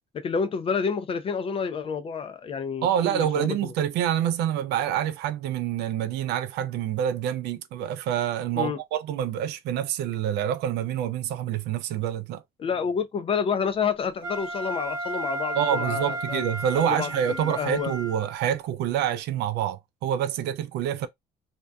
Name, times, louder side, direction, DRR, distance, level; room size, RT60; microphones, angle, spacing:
voice 1, 0.1-3.7 8.6-8.8 12.6-16.4 16.7-17.1 17.4-17.9, left 6 dB, 35° left, 0.3 m, -29 dB
voice 2, 2.8-12.4 15.5-21.1, right 10 dB, 85° right, 0.4 m, -27 dB
Wind instrument woodwind instrument, 14.2-18.5, right 1 dB, 15° right, 1.0 m, -33 dB
2.6 x 2.2 x 2.2 m
cardioid pair, 110°, 17 cm